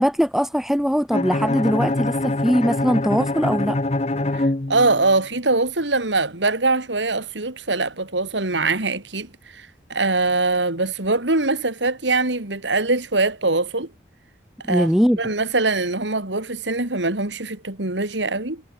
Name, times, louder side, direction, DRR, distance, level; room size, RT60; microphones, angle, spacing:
voice 1, 0.0-3.8 14.7-15.2, equal, ahead, 4.9 m, -21 dB
Bowed string instrument, 1.1-5.2, left 2 dB, 35° left, 0.9 m, -24 dB
voice 2, 4.3-13.9 14.7-14.9 15.2-18.6, right 3 dB, 85° right, 3.5 m, -23 dB
head